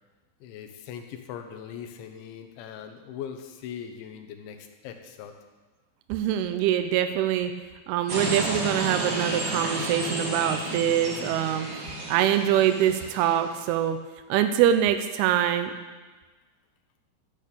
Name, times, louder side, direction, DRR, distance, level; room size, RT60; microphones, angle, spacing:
voice 1, 0.4-5.3, left 8 dB, 85° left, 6 dB, 3.4 m, -40 dB
voice 2, 6.1-7.5 7.9-11.7 12.1-14.0 14.3-15.7, right 10 dB, 85° right, 8 dB, 2.3 m, -24 dB
sound 1, 8.1-13.6, right 1 dB, 35° right, 2.3 m, -32 dB
14.0 x 8.7 x 6.9 m, 1.3 s
omnidirectional pair, 5.3 m